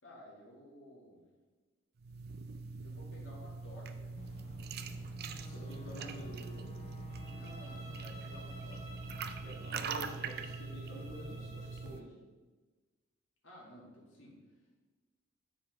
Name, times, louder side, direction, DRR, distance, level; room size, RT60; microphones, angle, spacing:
voice 1, 0.0-1.3 2.8-4.1 5.7-6.3 7.3-9.2 10.8-11.4 13.4-14.3, left 1 dB, 70° left, -4 dB, 2.1 m, -55 dB
sound 1, 2.0-12.0, right 4 dB, 50° right, 0.4 m, -43 dB
Boat Water vehicle / Engine, 4.2-9.5, left 1 dB, 35° left, 0.7 m, -52 dB
voice 2, 5.4-6.7 9.4-12.2, left 1 dB, 90° left, -5 dB, 1.8 m, -48 dB
Bowed string instrument, 7.1-12.0, equal, 35° right, 2.0 m, -54 dB
7.3 x 5.0 x 4.6 m, 1.3 s
head